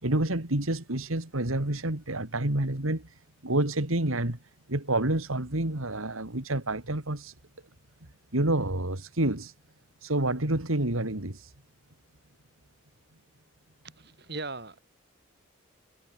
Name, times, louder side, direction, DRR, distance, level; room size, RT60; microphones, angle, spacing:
voice 1, 0.0-3.1 3.4-4.4 4.7-7.3 8.3-9.5 10.0-11.5, right 1 dB, 90° right, 3.0 m, -28 dB
voice 2, 13.8-14.8, right 3 dB, 50° right, 5.0 m, -39 dB
head